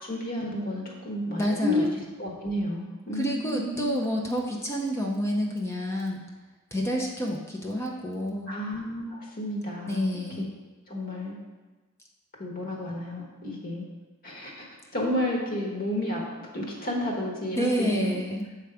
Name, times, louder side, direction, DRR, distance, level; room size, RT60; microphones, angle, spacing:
voice 1, 0.0-4.0 8.5-10.2 10.9-11.4 12.4-13.8 14.2-14.6 14.9-16.2 16.5-18.2, left 1 dB, 40° left, -2 dB, 1.3 m, -31 dB
voice 2, 1.4-1.9 3.1-6.2 6.7-8.5 9.9-10.5 17.5-18.5, equal, 15° left, -1 dB, 0.6 m, -28 dB
7.9 x 3.4 x 4.8 m, 1.3 s
head